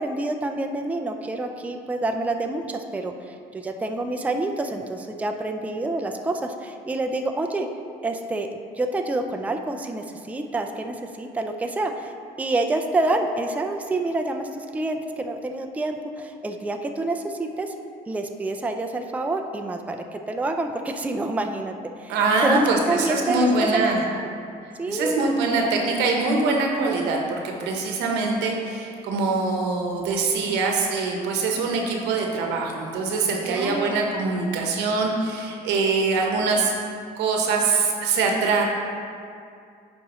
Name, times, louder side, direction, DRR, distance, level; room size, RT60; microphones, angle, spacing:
voice 1, 0.0-7.7 8.0-8.5 8.8-12.1 12.4-17.7 18.1-22.2 22.4-23.9 24.2-24.3 24.8-25.3 33.5-34.0, right 2 dB, 10° right, 4 dB, 0.4 m, -27 dB
voice 2, 22.1-24.0 24.9-36.7 37.2-38.6, right 3 dB, 90° right, 1 dB, 1.0 m, -23 dB
10.5 x 4.3 x 3.0 m, 2.4 s
cardioid pair, 110°, 17 cm